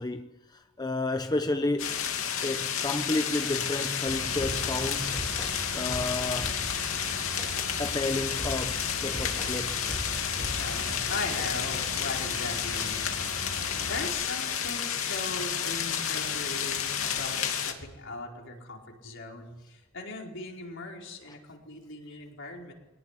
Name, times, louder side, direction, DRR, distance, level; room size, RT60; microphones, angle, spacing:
voice 1, 0.0-2.0 2.4-5.3 5.7-6.6 7.8-9.9, left 2 dB, 20° left, 0.8 m, -31 dB
sound 1, 1.8-17.7, left 8 dB, 85° left, 2.7 m, -31 dB
Bus / Idling, 4.1-14.1, right 1 dB, 80° right, 6.4 m, -41 dB
sound 2, 4.4-6.9 7.4-7.6 8.4-10.9 11.4-11.6, equal, ahead, 2.3 m, -39 dB
voice 2, 10.6-13.4 13.8-22.7, left 2 dB, 65° left, 4.8 m, -39 dB
23.5 x 18.5 x 9.9 m
head